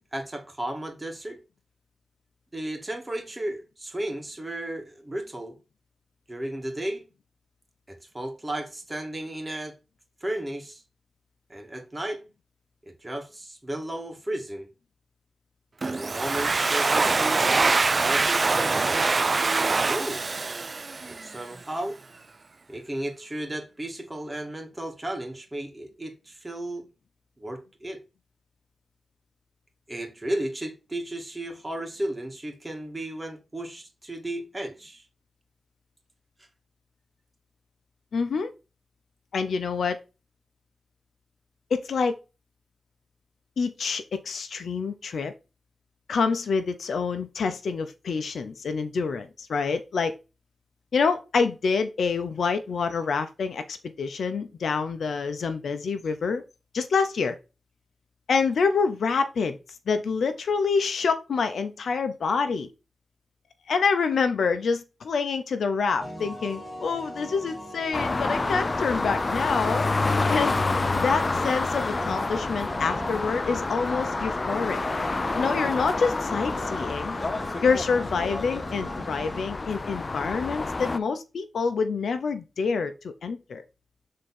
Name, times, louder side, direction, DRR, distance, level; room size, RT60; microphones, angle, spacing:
voice 1, 0.0-1.4 2.5-5.6 6.3-7.0 7.9-9.7 10.2-10.8 11.5-12.2 12.9-14.7 15.8-20.2 21.1-22.0 22.7-26.9 27.4-28.0 29.9-35.0 70.8-71.0, right 1 dB, 20° right, 2.1 m, -34 dB
Domestic sounds home sounds, 15.8-21.4, right 3 dB, 50° right, 0.5 m, -24 dB
voice 2, 38.1-38.5 39.3-40.0 41.7-42.2 43.6-45.3 46.1-50.1 50.9-56.4 56.7-57.4 58.3-59.6 59.9-62.7 63.7-69.9 70.3-74.8 75.3-77.2 77.6-83.6, left 5 dB, 80° left, 0.7 m, -27 dB
sound 1, 66.0-79.4, equal, 5° right, 2.1 m, -40 dB
sound 2, 67.9-81.0, left 3 dB, 40° left, 0.5 m, -28 dB
6.5 x 3.7 x 4.3 m
cardioid pair, 55°, 0 cm